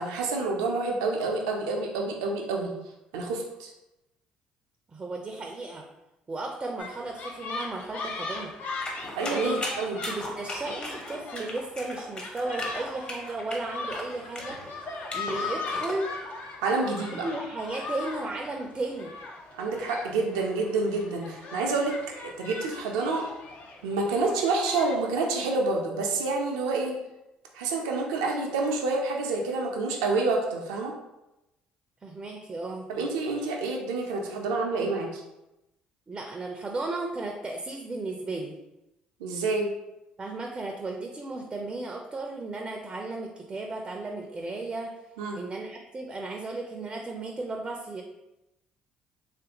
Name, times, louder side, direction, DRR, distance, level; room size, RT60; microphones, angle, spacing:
voice 1, 0.0-2.7 3.1-3.7 9.1-10.0 16.6-17.3 19.5-23.2 23.8-26.9 27.5-30.9 32.9-35.2 39.2-39.7 45.2-45.4, right 3 dB, 90° right, 0 dB, 0.4 m, -28 dB
voice 2, 4.9-5.9 6.3-8.5 9.3-9.6 9.9-14.9 15.1-16.1 17.1-19.1 32.0-32.9 36.1-38.6 40.2-44.9 45.3-48.0, right 2 dB, 30° right, 2 dB, 0.4 m, -35 dB
sound 1, 6.8-25.0, left 3 dB, 60° left, 0.5 m, -39 dB
sound 2, 8.8-16.0, left 1 dB, 35° left, 1.0 m, -38 dB
3.1 x 2.5 x 2.8 m, 0.94 s
supercardioid pair, 65°, 3 cm